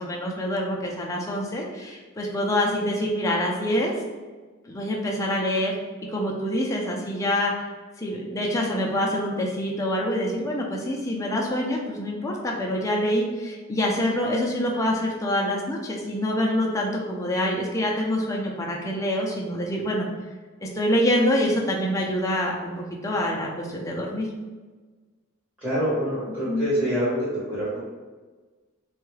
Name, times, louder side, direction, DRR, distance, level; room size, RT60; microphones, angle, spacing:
voice 1, 0.0-3.9 4.7-5.7 6.1-7.7 8.0-20.1 20.6-24.3 26.5-26.7, left 1 dB, 15° left, -2 dB, 0.5 m, -26 dB
voice 2, 25.6-27.8, equal, 5° right, -11 dB, 0.9 m, -26 dB
3.5 x 2.3 x 3.2 m, 1.3 s
head